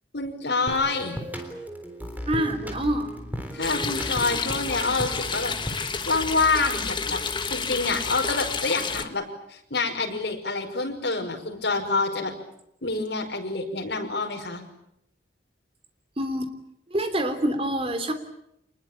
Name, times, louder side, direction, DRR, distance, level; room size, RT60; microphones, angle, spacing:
voice 1, 0.1-1.2 3.5-5.5 5.8-7.2 7.5-12.3 12.8-14.6, left 3 dB, 70° left, 2 dB, 5.6 m, -27 dB
sound 1, 0.7-6.0, equal, 10° right, 3.7 m, -36 dB
voice 2, 2.2-3.1 16.2-16.5 16.9-18.1, right 1 dB, 30° right, 8 dB, 3.2 m, -26 dB
sound 2, 3.6-9.0, left 5 dB, 25° left, 1.5 m, -30 dB
27.0 x 21.0 x 9.0 m, 0.79 s
head